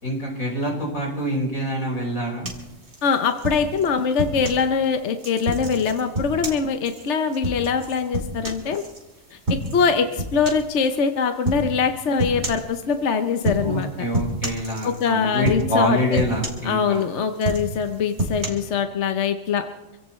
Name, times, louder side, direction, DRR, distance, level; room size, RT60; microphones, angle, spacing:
voice 1, 0.0-2.5 13.6-17.0, equal, 90° left, -2 dB, 5.3 m, -25 dB
sound 1, 2.4-4.7 5.2-9.0 9.5-9.9 10.2-10.7 11.4-11.7 12.2-12.7 13.4-13.8 14.1-15.1 15.4-15.8 16.1-17.0 17.4-18.5, right 1 dB, 50° right, 2.9 m, -28 dB
voice 2, 3.0-8.8 9.3-9.4 9.7-13.9 14.8-16.2 16.6-19.6, left 6 dB, 60° left, 7 dB, 1.1 m, -23 dB
26.5 x 16.5 x 3.2 m, 1.1 s
omnidirectional pair, 1.4 m